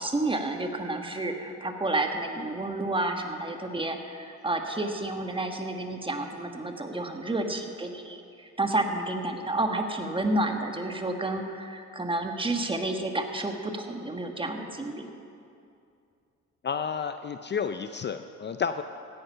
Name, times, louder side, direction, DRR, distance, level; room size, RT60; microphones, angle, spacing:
voice 1, 0.0-15.1, right 2 dB, 15° right, 4 dB, 1.5 m, -30 dB
voice 2, 16.6-18.8, left 6 dB, 35° left, 9 dB, 0.5 m, -31 dB
16.0 x 9.7 x 5.7 m, 2.5 s
cardioid pair, 90°, 30 cm